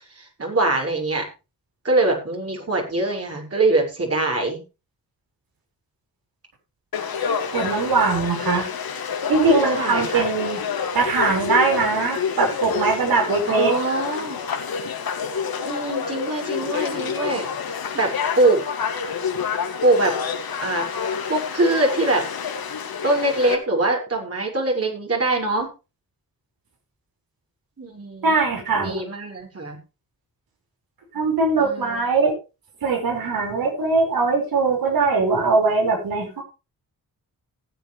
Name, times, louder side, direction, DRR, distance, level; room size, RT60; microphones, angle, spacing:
voice 1, 0.1-1.3 1.8-4.6 9.7-10.3 13.5-14.4 15.6-17.5 17.9-18.1 18.4-18.6 19.8-20.1 20.6-22.2 23.0-25.7 27.8-28.4 28.7-29.8 31.5-32.0, right 2 dB, 40° right, 0 dB, 6.3 m, -23 dB
Conversation / Crowd, 6.9-23.5, left 6 dB, 85° left, 2.4 m, -28 dB
voice 2, 7.5-8.7 9.3-10.6 10.9-13.7 28.2-28.9 31.1-32.3 32.8-36.4, right 4 dB, 80° right, 1 dB, 5.7 m, -21 dB
18.5 x 8.7 x 3.4 m, 0.29 s
cardioid pair, 75°, 35 cm